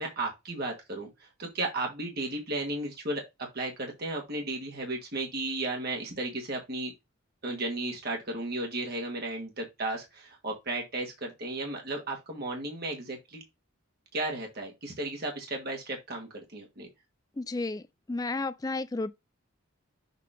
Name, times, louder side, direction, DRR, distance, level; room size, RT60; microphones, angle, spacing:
voice 1, 0.0-3.2 3.5-6.9 7.4-13.4 14.1-16.9, right 2 dB, 45° right, 1.5 m, -34 dB
voice 2, 17.4-19.1, left 3 dB, 15° left, 0.3 m, -32 dB
6.7 x 2.8 x 5.0 m
head